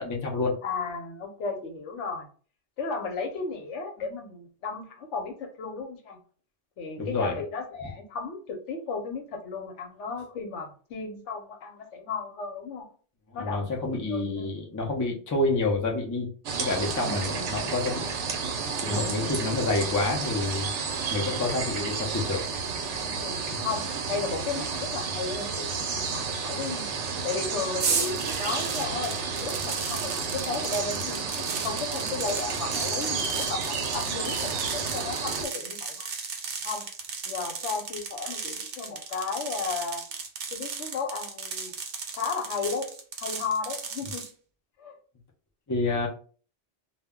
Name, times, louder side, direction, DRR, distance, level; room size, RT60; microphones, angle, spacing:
voice 1, 0.0-0.6 7.0-7.3 13.3-16.3 16.6-18.1 18.8-20.7 21.1-22.5 23.5-23.7 45.7-46.1, left 2 dB, 30° left, 0 dB, 0.3 m, -28 dB
voice 2, 0.6-2.3 2.8-6.2 6.8-12.9 13.3-14.5 17.0-17.6 18.8-19.6 23.0-26.9 27.2-36.1 36.6-36.9 37.3-40.0 40.5-41.7 42.1-42.9 43.2-44.2 44.8-44.9, left 4 dB, 85° left, 4 dB, 1.0 m, -34 dB
sound 1, 16.5-35.5, right 5 dB, 85° right, 0.9 m, -31 dB
sound 2, 27.8-44.3, right 5 dB, 60° right, 0.7 m, -35 dB
2.3 x 2.1 x 3.5 m, 0.40 s
omnidirectional pair, 1.2 m